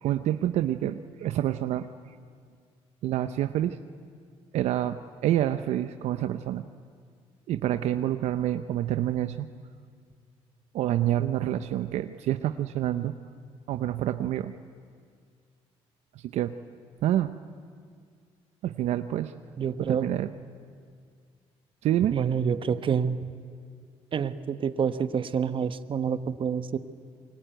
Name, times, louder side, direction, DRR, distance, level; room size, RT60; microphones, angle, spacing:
voice 1, 0.0-1.9 3.0-3.8 4.5-6.6 7.5-9.5 10.7-13.1 13.7-14.5 16.2-16.5 17.0-17.3 18.6-19.3 19.9-20.3 21.8-22.2, right 12 dB, 75° right, 10 dB, 0.8 m, -27 dB
voice 2, 19.6-20.1 22.1-23.2 24.1-26.8, right 7 dB, 50° right, 12 dB, 1.3 m, -27 dB
26.5 x 23.0 x 9.2 m, 2.1 s
cardioid pair, 80°, 11 cm